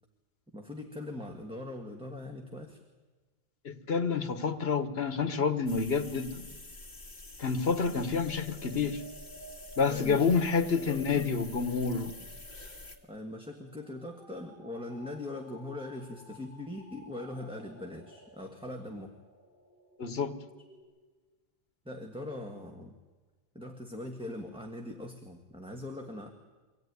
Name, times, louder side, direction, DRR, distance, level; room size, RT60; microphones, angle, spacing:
voice 1, 0.5-2.8 9.9-10.3 10.7-11.2 13.0-19.1 21.8-23.0 23.5-26.3, left 1 dB, 5° right, 2 dB, 1.5 m, -41 dB
voice 2, 3.6-6.5 7.4-9.0 9.8-12.1 20.0-20.3, left 5 dB, 70° left, 10 dB, 1.5 m, -28 dB
sound 1, 5.7-13.0, left 2 dB, 45° left, 2.2 m, -48 dB
sound 2, 7.5-20.8, right 1 dB, 60° right, 8.0 m, -54 dB
24.0 x 17.5 x 9.5 m, 1.3 s
omnidirectional pair, 1.1 m